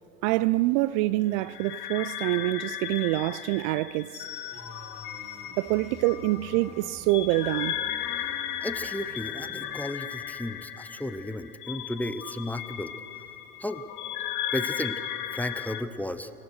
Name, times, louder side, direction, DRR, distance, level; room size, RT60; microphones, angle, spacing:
voice 1, 0.2-4.2 5.6-7.8, right 18 dB, 50° right, 0.4 m, -26 dB
sound 1, 1.4-15.8, left 11 dB, 75° left, 1.4 m, -36 dB
sound 2, 4.5-9.9, equal, 15° right, 2.1 m, -48 dB
voice 2, 8.6-12.9 13.6-13.8 14.5-15.0 15.3-16.3, left 1 dB, 5° left, 0.7 m, -34 dB
27.0 x 15.5 x 6.5 m
hypercardioid pair, 105°, 46 cm